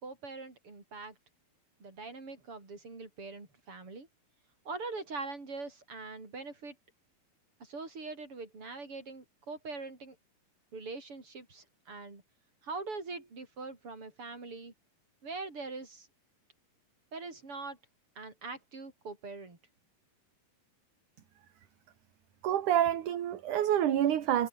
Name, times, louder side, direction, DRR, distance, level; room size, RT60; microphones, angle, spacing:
voice 1, 0.0-1.1 1.8-4.1 4.7-6.8 7.6-10.2 10.7-12.2 12.6-14.7 15.2-16.1 17.1-17.8 18.2-19.6, right 3 dB, 35° right, 6.8 m, -42 dB
voice 2, 22.4-24.5, right 11 dB, 60° right, 3.1 m, -27 dB
omnidirectional pair, 4.3 m